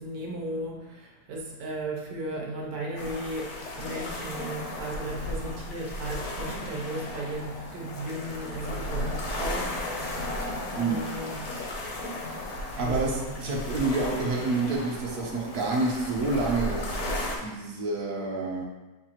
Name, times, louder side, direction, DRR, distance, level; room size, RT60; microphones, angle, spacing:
voice 1, 0.0-10.4 10.7-11.6 12.7-13.4, right 1 dB, 80° right, -2 dB, 1.4 m, -36 dB
sound 1, 3.0-17.4, left 1 dB, 55° left, 0.8 m, -35 dB
voice 2, 12.8-18.7, right 3 dB, 55° right, -2 dB, 1.1 m, -28 dB
6.6 x 2.5 x 2.9 m, 1.1 s
omnidirectional pair, 1.9 m